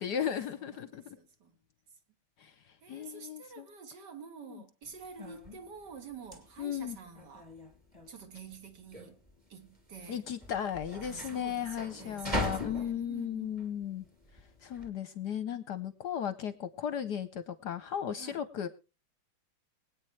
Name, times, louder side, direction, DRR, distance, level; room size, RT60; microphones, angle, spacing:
voice 1, 0.0-1.2 2.4-3.7 4.5-4.6 6.6-7.0 10.1-14.1 14.6-18.7, left 9 dB, 60° left, 1.2 m, -36 dB
voice 2, 0.6-1.6 1.9-2.0 2.8-7.5 8.1-9.2 9.5-10.2 11.0-13.6 15.5-15.6 18.2-18.5, right 5 dB, 55° right, 2.2 m, -49 dB
sound 1, 4.8-14.9, left 1 dB, 15° right, 2.6 m, -41 dB
23.5 x 8.9 x 3.2 m
omnidirectional pair, 2.3 m